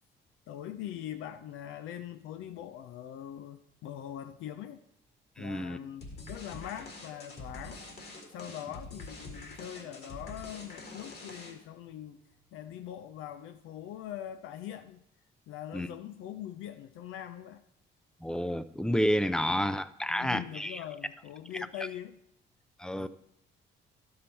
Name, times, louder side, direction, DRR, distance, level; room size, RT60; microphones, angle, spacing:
voice 1, 0.5-4.8 5.4-7.8 8.3-12.2 12.5-15.0 15.5-17.6 19.4-19.5 20.1-22.2 22.9-23.1, left 11 dB, 85° left, 0.4 m, -42 dB
voice 2, 5.4-5.8 15.7-15.9 18.2-20.8 22.8-23.1, equal, 5° left, 0.4 m, -30 dB
sound 1, 6.0-11.8, left 2 dB, 55° left, 1.9 m, -45 dB
11.5 x 5.5 x 4.3 m
cardioid pair, 90°, 20 cm